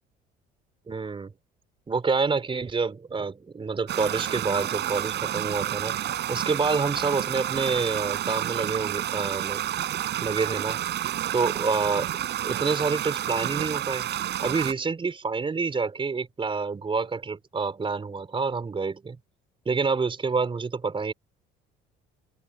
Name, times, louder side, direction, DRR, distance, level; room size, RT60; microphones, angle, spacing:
voice 1, 0.9-1.3 1.9-6.0 6.3-9.6 10.2-10.8 11.3-12.1 12.4-14.1 14.4-19.2 19.7-21.1, right 4 dB, 25° right, 4.1 m, -27 dB
sound 1, 3.9-14.7, right 12 dB, 60° right, 6.9 m, -30 dB
supercardioid pair, 90°, 20 cm